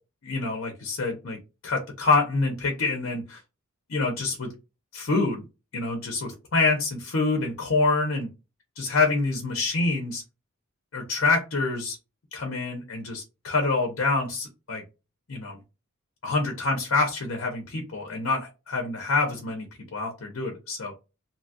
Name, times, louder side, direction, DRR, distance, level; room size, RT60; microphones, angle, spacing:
voice 1, 0.2-3.4 3.9-4.5 4.9-5.4 5.7-8.3 8.8-10.2 10.9-12.0 12.3-14.8 15.3-15.6 16.2-19.7 19.9-20.9, left 3 dB, 65° left, 2 dB, 0.7 m, -26 dB
2.8 x 2.4 x 2.7 m, 0.28 s
head